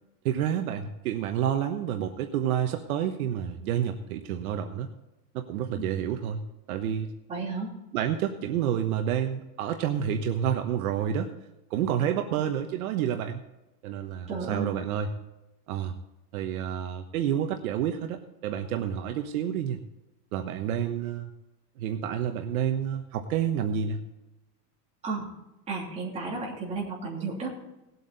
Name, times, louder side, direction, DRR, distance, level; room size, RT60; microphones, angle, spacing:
voice 1, 0.2-4.9 5.3-7.1 7.9-11.3 11.7-13.4 13.8-15.1 15.7-15.9 16.3-19.8 20.3-21.3 21.8-24.0, right 9 dB, 60° right, 6 dB, 1.2 m, -29 dB
voice 2, 7.3-7.7 14.3-14.7 25.0-25.3 25.7-27.6, right 4 dB, 15° right, -4 dB, 3.1 m, -33 dB
18.5 x 8.3 x 4.1 m, 0.94 s
supercardioid pair, 180°, 48 cm